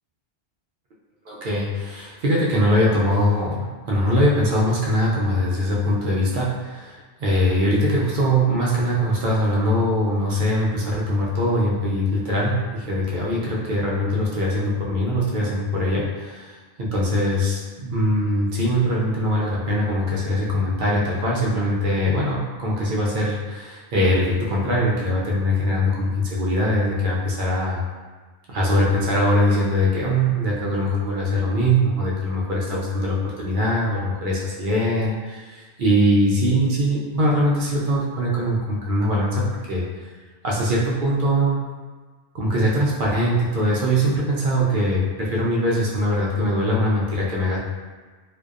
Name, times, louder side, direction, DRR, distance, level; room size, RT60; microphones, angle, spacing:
voice 1, 1.3-27.8 28.5-39.8 40.4-41.6 42.3-47.6, equal, 60° right, -5 dB, 0.6 m, -22 dB
2.5 x 2.2 x 2.3 m, 1.4 s
omnidirectional pair, 1.2 m